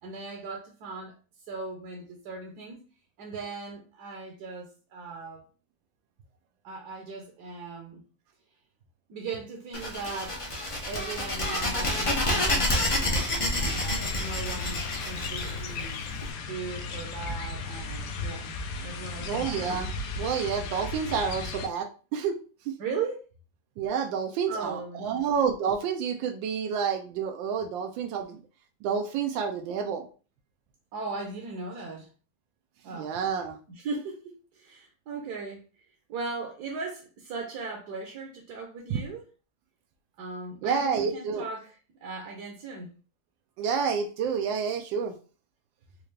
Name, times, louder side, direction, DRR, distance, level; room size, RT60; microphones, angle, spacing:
voice 1, 0.0-1.1 1.5-2.8 3.2-5.4 6.6-8.0 9.1-10.4 10.9-16.1 16.5-18.5 18.8-19.8 22.8-23.2 24.5-25.2 30.9-32.1 32.8-33.2 33.7-35.6 36.1-39.2 40.2-42.9, right 4 dB, 65° right, 1 dB, 1.2 m, -38 dB
sound 1, 9.7-16.2, left 1 dB, 50° left, 0.3 m, -28 dB
sound 2, 13.5-21.7, left 3 dB, 75° left, 1.1 m, -35 dB
voice 2, 19.3-19.9 20.2-22.4 22.7-22.8 23.8-28.4 28.8-30.0 32.9-33.6 38.9-39.0 40.6-41.4 43.6-45.1, right 6 dB, 85° right, 4 dB, 1.3 m, -29 dB
4.4 x 2.4 x 3.2 m, 0.36 s
omnidirectional pair, 2.0 m